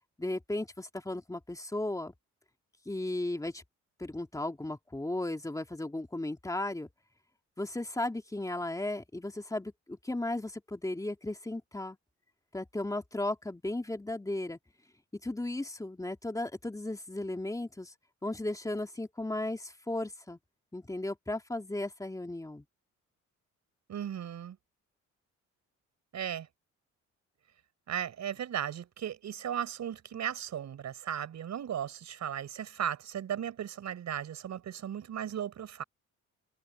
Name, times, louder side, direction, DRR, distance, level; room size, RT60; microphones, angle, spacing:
voice 1, 0.2-2.1 2.9-3.6 4.0-6.9 7.6-12.0 12.5-14.6 15.1-17.9 18.2-20.4 20.7-22.6, left 2 dB, 10° left, 2.9 m, -35 dB
voice 2, 23.9-24.6 26.1-26.5 27.9-35.8, right 9 dB, 65° right, 5.7 m, -36 dB
cardioid pair, 90°, 30 cm